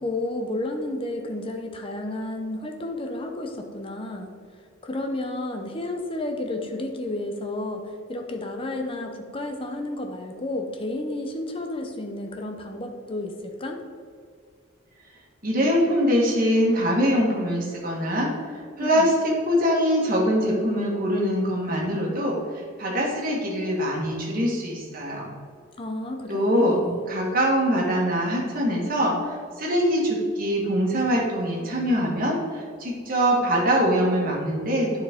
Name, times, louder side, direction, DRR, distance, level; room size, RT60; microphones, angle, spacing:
voice 1, 0.0-4.3 4.8-13.3 13.6-13.8 18.8-19.1 25.8-27.0, left 2 dB, 25° left, 3 dB, 0.6 m, -31 dB
voice 2, 15.4-25.3 26.3-35.0, equal, 40° right, -3 dB, 1.5 m, -23 dB
9.7 x 4.4 x 3.6 m, 2.2 s
head